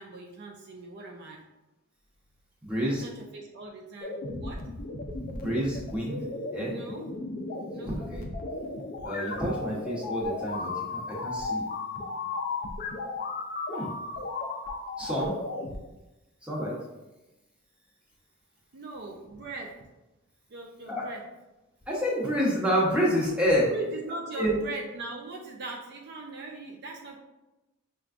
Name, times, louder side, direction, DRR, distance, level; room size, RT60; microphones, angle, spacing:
voice 1, 0.0-1.4 2.9-4.7 6.6-7.1 7.7-8.0 18.7-19.8 20.5-21.2 23.6-27.2, right 3 dB, 50° right, 0 dB, 0.4 m, -40 dB
voice 2, 2.6-3.0 5.4-6.2 6.5-6.7 8.0-8.2 9.0-11.6 13.7-13.9 15.0-15.3 16.4-16.7 20.9-21.0 21.9-23.7 24.4-24.5, equal, 5° right, -5 dB, 1.0 m, -28 dB
sound 1, 4.0-15.8, left 3 dB, 45° left, 0.4 m, -35 dB
5.9 x 2.3 x 2.4 m, 1.0 s
head